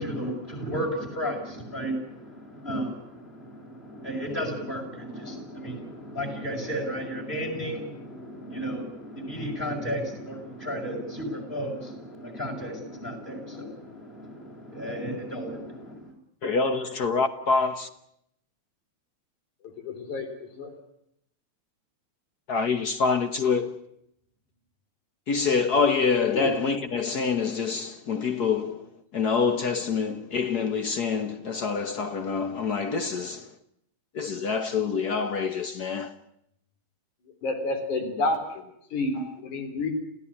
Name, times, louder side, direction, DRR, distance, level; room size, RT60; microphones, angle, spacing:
voice 1, 0.0-16.1, equal, 15° left, 6.1 m, -34 dB
voice 2, 16.4-17.9 22.5-23.8 25.3-33.5 34.1-36.2 39.1-39.2, left 5 dB, 65° left, 0.9 m, -26 dB
voice 3, 19.8-20.3 20.5-20.7 26.3-26.5 37.4-38.6 38.9-39.9, left 2 dB, 90° left, 5.0 m, -29 dB
27.5 x 16.0 x 9.9 m
omnidirectional pair, 3.3 m